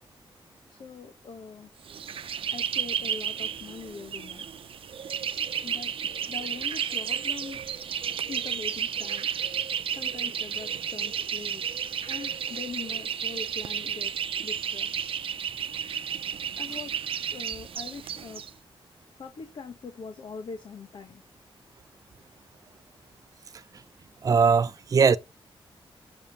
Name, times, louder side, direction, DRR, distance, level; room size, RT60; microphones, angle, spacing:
voice 1, 0.7-1.7 2.5-4.5 5.6-7.6 8.3-9.3 9.9-11.6 12.1-14.9 16.5-18.4 19.2-21.2, left 5 dB, 55° left, 1.5 m, -42 dB
sound 1, 1.8-18.5, right 8 dB, 70° right, 0.8 m, -32 dB
voice 2, 24.2-25.2, right 5 dB, 40° right, 0.5 m, -20 dB
7.3 x 7.0 x 7.2 m
wide cardioid pair, 155°, 10 cm